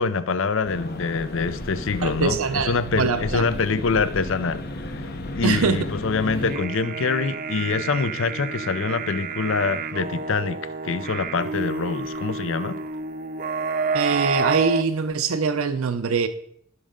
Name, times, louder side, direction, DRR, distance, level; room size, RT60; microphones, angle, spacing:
voice 1, 0.0-4.6 5.3-12.8, left 4 dB, 65° left, 0.6 m, -25 dB
sound 1, 0.6-6.6, left 1 dB, 50° left, 0.9 m, -34 dB
voice 2, 2.0-3.4 5.4-5.8 13.9-16.3, right 5 dB, 85° right, 0.6 m, -23 dB
sound 2, 6.4-14.8, right 4 dB, 45° right, 0.6 m, -29 dB
15.5 x 6.4 x 3.7 m
head